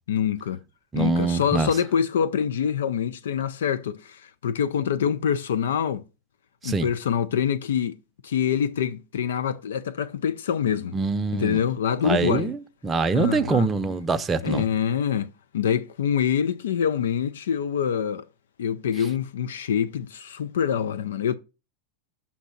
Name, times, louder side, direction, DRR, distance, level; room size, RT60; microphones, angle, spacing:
voice 1, 0.1-0.6 0.9-6.0 6.6-7.9 8.2-11.0 11.3-12.5 13.1-13.7 14.4-18.3 18.6-21.3, left 8 dB, 85° left, 0.4 m, -25 dB
voice 2, 0.9-1.7 6.6-6.9 10.9-11.6 12.0-14.6, right 4 dB, 20° right, 0.6 m, -24 dB
7.2 x 2.8 x 5.7 m
hypercardioid pair, 115°, 0 cm